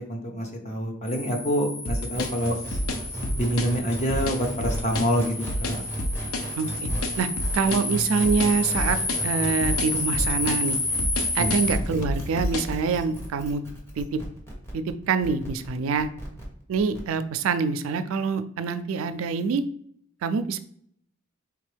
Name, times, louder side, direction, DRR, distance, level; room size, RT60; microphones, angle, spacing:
voice 1, 0.1-2.6 3.4-5.8 11.4-11.6, equal, 35° left, 2 dB, 0.8 m, -26 dB
sound 1, 1.1-11.7, left 2 dB, 65° left, 1.6 m, -31 dB
sound 2, 1.9-12.8, left 1 dB, 85° left, 0.6 m, -29 dB
sound 3, 2.1-17.0, right 1 dB, 10° left, 1.0 m, -36 dB
voice 2, 6.5-6.9 7.2-10.8 11.3-13.6 14.0-14.2 14.7-16.1 16.7-19.6 20.2-20.6, right 5 dB, 80° right, 11 dB, 0.4 m, -25 dB
4.4 x 3.4 x 3.3 m, 0.66 s
head